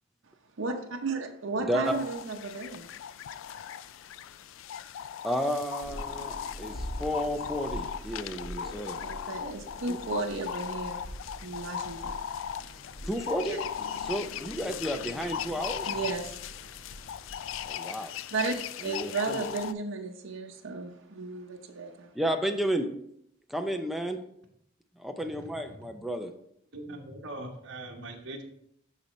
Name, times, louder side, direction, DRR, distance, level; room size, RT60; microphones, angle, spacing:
voice 1, 0.6-2.9 9.0-11.0 11.4-12.2 13.5-13.6 15.9-16.3 18.3-18.6 18.8-22.1, right 4 dB, 80° right, 3 dB, 0.7 m, -34 dB
voice 2, 1.6-2.0 5.2-9.0 9.9-10.0 13.1-13.6 14.0-15.9 17.7-18.2 18.8-19.4 22.2-22.9 23.5-24.2 25.0-26.3, equal, ahead, 4 dB, 0.5 m, -32 dB
sound 1, 1.8-19.7, left 8 dB, 80° left, 0.3 m, -38 dB
sound 2, 5.8-17.7, equal, 55° left, 1.0 m, -44 dB
voice 3, 25.2-25.9 26.7-28.4, right 1 dB, 65° right, 1 dB, 1.1 m, -42 dB
11.5 x 4.2 x 3.1 m, 0.73 s
head